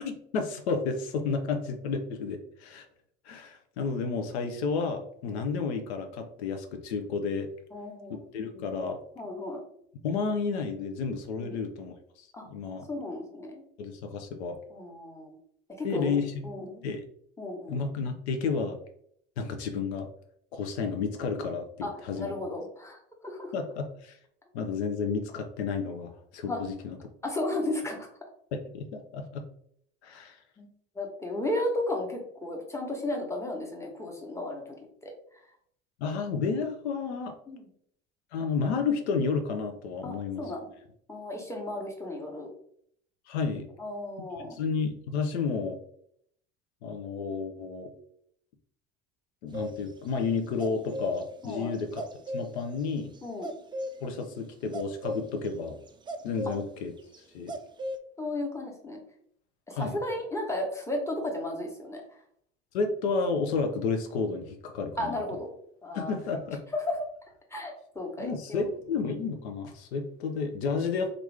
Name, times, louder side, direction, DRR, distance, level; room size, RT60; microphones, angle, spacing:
voice 1, 0.0-2.9 3.3-7.5 8.3-9.0 10.0-12.9 13.8-14.6 15.8-16.5 16.8-17.0 17.7-18.8 19.4-20.1 20.5-22.3 23.5-24.2 24.5-27.0 28.7-29.4 30.0-30.4 36.0-37.4 38.3-40.4 43.3-43.7 44.4-45.8 46.8-47.9 49.4-52.0 52.3-53.1 54.0-55.8 56.2-56.9 57.3-57.5 59.7-60.0 62.7-65.2 65.9-66.6 68.2-71.2, left 5 dB, 80° left, 5 dB, 0.6 m, -31 dB
voice 2, 7.7-8.2 9.2-9.6 11.4-11.6 12.3-12.5 12.9-13.6 14.7-15.4 15.8-16.2 16.4-16.8 17.4-17.8 21.8-21.9 22.2-23.5 26.5-26.6 27.2-28.1 30.6-30.7 30.9-34.8 35.0-35.1 37.5-37.7 40.0-40.7 41.1-42.5 43.8-44.6 51.4-51.7 53.2-53.5 58.2-59.0 59.7-62.0 65.0-65.5 65.8-66.1 66.7-67.0 67.5-68.7, left 1 dB, 10° left, 0 dB, 1.0 m, -34 dB
sound 1, 49.5-49.8 50.6-52.5 53.4-53.9 54.7-55.5 55.9-56.7 57.1-57.2 57.5-58.0, equal, 15° right, 0.3 m, -35 dB
2.9 x 2.5 x 3.4 m, 0.68 s
hypercardioid pair, 70°, 32 cm